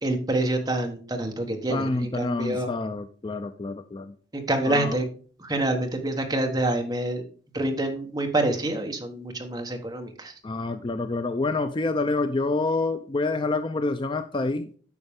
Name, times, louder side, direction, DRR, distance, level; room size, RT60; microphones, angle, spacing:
voice 1, 0.0-2.7 4.3-5.0 5.4-7.2 7.5-10.3, right 1 dB, 20° right, 3 dB, 1.2 m, -27 dB
voice 2, 1.7-4.1 4.6-5.0 10.4-14.8, left 3 dB, 25° left, 10 dB, 0.4 m, -27 dB
9.5 x 5.8 x 3.6 m, 0.42 s
head